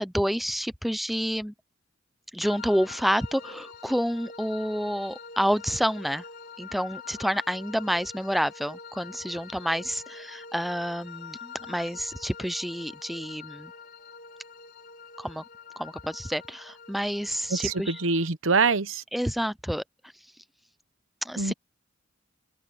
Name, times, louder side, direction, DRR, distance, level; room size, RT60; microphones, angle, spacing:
voice 1, 0.0-1.5 2.3-6.2 6.6-13.7 15.2-15.4 15.8-18.0 19.1-19.8 21.2-21.5, equal, ahead, 0.4 m, -29 dB
sound 1, 2.4-18.3, left 5 dB, 50° left, 3.9 m, -45 dB
voice 2, 17.5-19.0 21.4-21.5, right 4 dB, 80° right, 1.0 m, -24 dB
open air
head